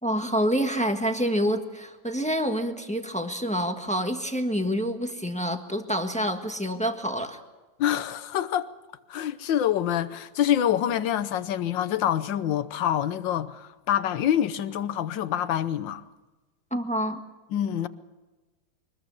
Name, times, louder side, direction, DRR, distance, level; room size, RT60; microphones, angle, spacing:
voice 1, 0.0-7.4 16.7-17.2, equal, 5° left, 1.3 m, -27 dB
voice 2, 7.8-8.7 9.1-16.0 17.5-17.9, left 10 dB, 80° left, 1.6 m, -26 dB
23.5 x 20.5 x 7.1 m
omnidirectional pair, 2.0 m